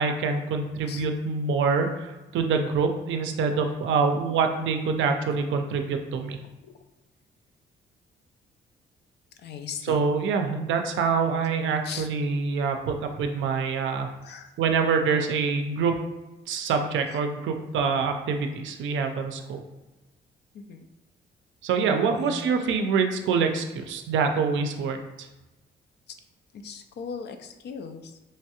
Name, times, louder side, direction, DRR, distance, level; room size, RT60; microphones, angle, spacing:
voice 1, 0.0-6.4 9.8-14.1 14.6-15.9 16.5-19.6 21.6-25.3, right 5 dB, 75° right, 5 dB, 0.5 m, -25 dB
voice 2, 9.4-10.0 11.8-12.1 14.2-14.5 20.5-20.9 22.1-22.4 26.5-28.2, left 6 dB, 60° left, 7 dB, 0.4 m, -38 dB
3.2 x 2.3 x 2.8 m, 1.1 s
cardioid pair, 90°, 20 cm